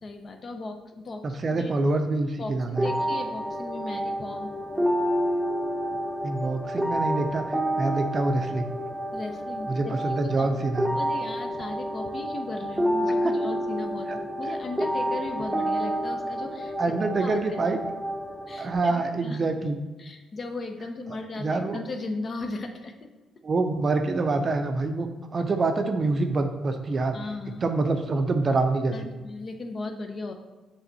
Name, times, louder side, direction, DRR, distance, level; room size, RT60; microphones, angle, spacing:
voice 1, 0.0-1.7 2.4-4.6 9.1-10.6 10.9-17.4 18.5-19.4 20.0-23.1 27.1-27.6 28.9-30.3, left 3 dB, 45° left, 5 dB, 0.7 m, -37 dB
voice 2, 1.2-2.9 6.2-8.7 9.7-10.9 13.2-13.3 14.1-14.2 16.8-17.8 18.6-19.8 21.4-21.8 23.4-25.1 25.3-27.2 27.6-29.1, right 3 dB, 40° right, 6 dB, 0.5 m, -26 dB
sound 1, 2.8-18.8, equal, 5° right, 0.8 m, -29 dB
6.9 x 3.5 x 4.0 m, 1.2 s
cardioid pair, 90°, 0 cm